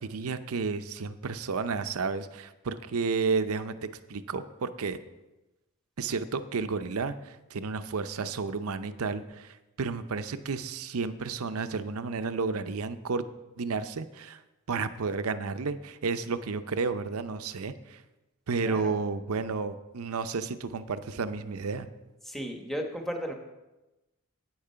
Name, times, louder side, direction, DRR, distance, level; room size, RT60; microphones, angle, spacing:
voice 1, 0.0-3.7 4.1-5.0 6.0-13.2 13.6-14.4 14.7-18.0 18.5-21.9, right 4 dB, 80° right, 11 dB, 0.6 m, -32 dB
voice 2, 18.6-19.0 22.2-23.3, equal, ahead, 3 dB, 1.1 m, -35 dB
8.9 x 8.7 x 5.7 m, 1.0 s
head